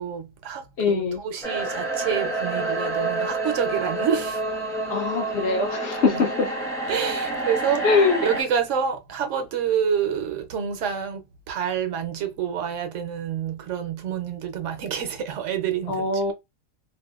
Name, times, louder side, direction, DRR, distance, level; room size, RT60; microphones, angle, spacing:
voice 1, 0.0-4.4 6.1-6.2 6.9-7.8 8.2-16.3, right 8 dB, 65° right, 0.9 m, -28 dB
voice 2, 0.8-1.2 4.9-6.5 7.8-8.2 15.9-16.3, left 4 dB, 60° left, 0.9 m, -22 dB
sound 1, 1.4-8.4, right 2 dB, 5° left, 0.6 m, -28 dB
2.7 x 2.5 x 2.3 m
omnidirectional pair, 1.4 m